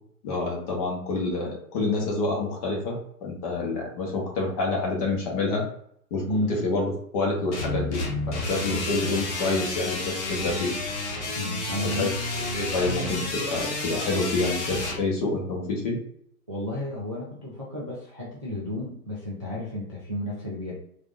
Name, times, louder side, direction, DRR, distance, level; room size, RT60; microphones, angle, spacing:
voice 1, 0.2-5.6 6.1-10.7 11.8-12.1 12.5-16.0, left 3 dB, 25° left, -1 dB, 0.8 m, -28 dB
sound 1, 7.5-15.0, left 2 dB, 50° left, 1.0 m, -30 dB
voice 2, 11.4-12.1 16.5-20.7, left 1 dB, 25° right, -7 dB, 0.3 m, -32 dB
3.6 x 2.4 x 2.5 m, 0.68 s
figure-of-eight pair, 130°, 46 cm